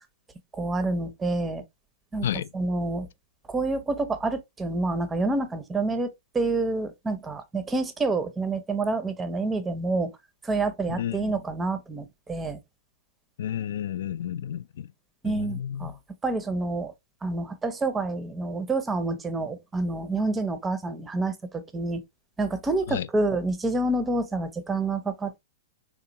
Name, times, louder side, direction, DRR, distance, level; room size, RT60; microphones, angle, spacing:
voice 1, 0.6-1.6 2.1-2.3 2.5-3.1 3.5-10.1 10.4-12.6 15.2-15.9 16.2-16.9 17.2-22.0 22.4-25.4, right 2 dB, 15° right, 0.5 m, -28 dB
voice 2, 10.9-11.4 13.4-14.9 15.2-16.0 22.9-23.1, left 10 dB, 70° left, 0.3 m, -32 dB
3.6 x 2.9 x 2.6 m
hypercardioid pair, 130°, 0 cm